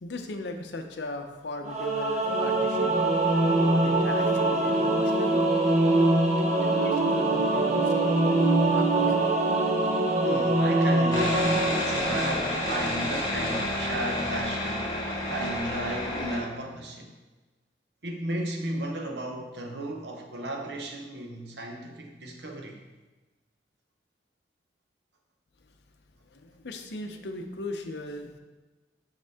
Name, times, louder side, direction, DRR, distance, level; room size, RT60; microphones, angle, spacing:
voice 1, 0.0-2.9 3.6-5.4 6.4-9.2 26.3-28.4, left 2 dB, 70° left, 6 dB, 0.6 m, -38 dB
Singing / Musical instrument, 1.6-12.9, right 2 dB, 40° right, 0.7 m, -24 dB
voice 2, 5.6-6.2 10.0-15.0 15.3-17.1 18.0-22.8, right 1 dB, 70° right, 2 dB, 0.8 m, -35 dB
sound 1, 11.1-16.4, left 1 dB, 20° left, 1.6 m, -30 dB
5.8 x 5.2 x 3.5 m, 1.2 s
head